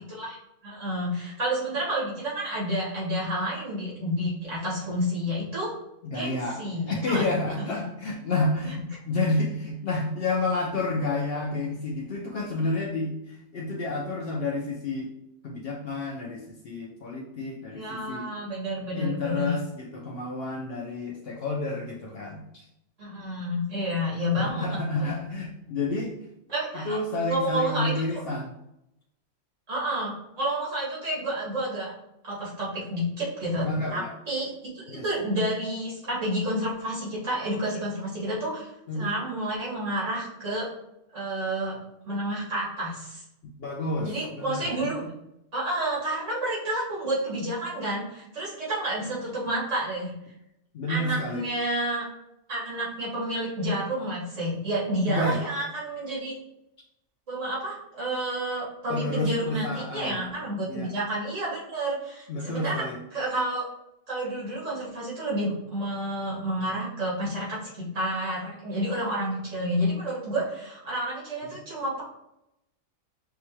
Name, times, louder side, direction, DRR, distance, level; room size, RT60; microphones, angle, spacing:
voice 1, 0.6-5.7 6.1-7.2 7.7-7.8 17.7-19.5 23.0-24.7 25.0-25.2 26.5-27.0 27.2-27.9 29.7-31.9 32.2-40.7 41.1-41.8 42.1-43.2 44.0-45.0 45.5-50.1 50.9-52.0 52.5-56.3 57.3-63.6 64.1-72.0, right 1 dB, 65° right, -7 dB, 2.2 m, -30 dB
voice 2, 6.0-6.6 6.9-15.1 15.4-18.3 18.9-22.7 24.4-26.1 26.7-28.5 33.6-34.1 34.9-35.0 38.9-39.1 43.6-45.1 50.7-51.5 55.1-55.4 58.9-60.2 60.7-60.9 62.3-63.0, left 2 dB, 60° left, 0 dB, 0.7 m, -30 dB
5.9 x 2.3 x 3.0 m, 0.84 s
omnidirectional pair, 1.4 m